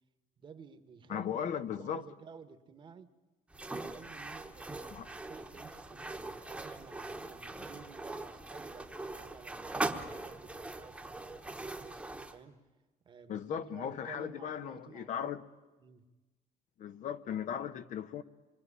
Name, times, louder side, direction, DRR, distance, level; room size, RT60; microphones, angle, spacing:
voice 1, 0.4-3.1 3.8-12.0 12.3-12.6 13.0-15.4 15.8-16.0, right 6 dB, 35° right, 1.3 m, -53 dB
voice 2, 1.1-2.0 4.9-5.1 13.3-15.4 16.8-18.2, left 8 dB, 60° left, 1.0 m, -37 dB
sound 1, 3.5-12.4, right 2 dB, 10° right, 1.2 m, -41 dB
26.0 x 23.0 x 9.9 m
cardioid pair, 175°, 14 cm